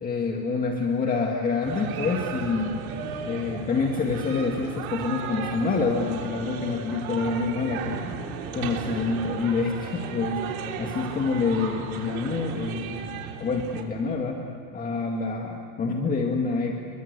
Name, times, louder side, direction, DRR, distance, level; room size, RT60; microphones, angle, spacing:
voice 1, 0.0-2.8 3.3-8.1 8.5-13.0 13.4-14.4 14.7-16.7, left 4 dB, 20° left, 1 dB, 1.9 m, -27 dB
sound 1, 1.6-13.8, right 6 dB, 90° right, 3.4 m, -35 dB
30.0 x 23.0 x 8.2 m, 2.6 s
supercardioid pair, 155°, 41 cm